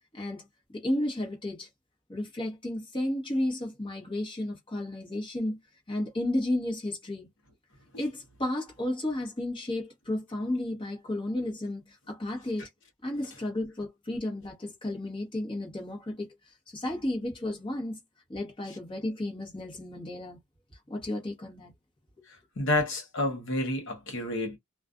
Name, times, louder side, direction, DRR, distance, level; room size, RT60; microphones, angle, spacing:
voice 1, 0.1-1.7 2.1-5.6 5.9-7.3 8.0-12.7 13.0-16.3 16.7-18.0 18.3-20.4 20.9-21.7, left 1 dB, 25° left, 0.9 m, -33 dB
voice 2, 22.3-24.6, left 2 dB, 60° left, 0.8 m, -30 dB
2.4 x 2.3 x 2.3 m
head